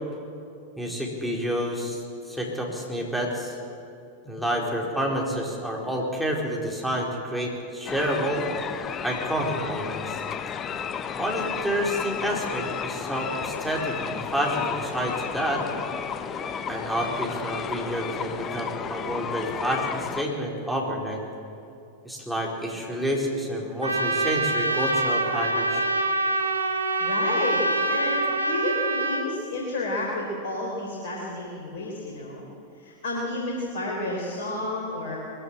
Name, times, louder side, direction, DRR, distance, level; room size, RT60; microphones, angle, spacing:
voice 1, 0.8-2.0 2.3-3.6 4.2-8.5 9.0-10.2 11.1-15.6 16.7-21.2 22.0-25.8, equal, ahead, -2 dB, 4.5 m, -29 dB
sound 1, 7.9-20.2, left 7 dB, 25° left, 1.0 m, -33 dB
Trumpet, 23.8-29.3, right 2 dB, 75° right, 1.3 m, -25 dB
voice 2, 27.0-27.6 27.9-32.4 32.7-35.2, left 2 dB, 60° left, -2 dB, 3.7 m, -31 dB
21.5 x 15.0 x 8.7 m, 2.6 s
figure-of-eight pair, 90°, 0 cm